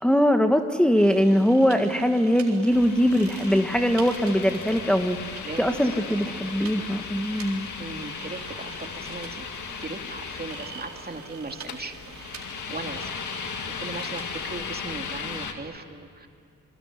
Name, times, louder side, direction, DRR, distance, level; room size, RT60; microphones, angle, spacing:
voice 1, 0.0-7.7, equal, 5° left, 5 dB, 1.6 m, -22 dB
sound 1, 1.0-14.6, right 6 dB, 75° right, 3.9 m, -44 dB
sound 2, 2.7-15.5, left 6 dB, 80° left, 2.2 m, -37 dB
voice 2, 5.4-6.3 7.8-9.5 9.8-12.3 12.7-13.1 13.8-16.3, right 3 dB, 35° right, 4 dB, 2.6 m, -38 dB
28.0 x 21.5 x 9.9 m, 2.6 s
cardioid pair, 60°, 29 cm